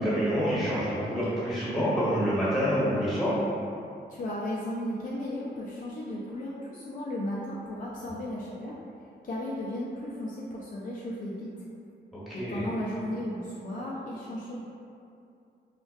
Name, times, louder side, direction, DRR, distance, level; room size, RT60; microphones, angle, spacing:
voice 1, 0.0-3.4 12.3-12.6, equal, ahead, -11 dB, 1.3 m, -27 dB
voice 2, 4.1-8.7 9.2-11.5 12.3-14.6, left 1 dB, 45° left, -5 dB, 0.4 m, -35 dB
2.3 x 2.1 x 2.5 m, 2.5 s
cardioid pair, 50°, 19 cm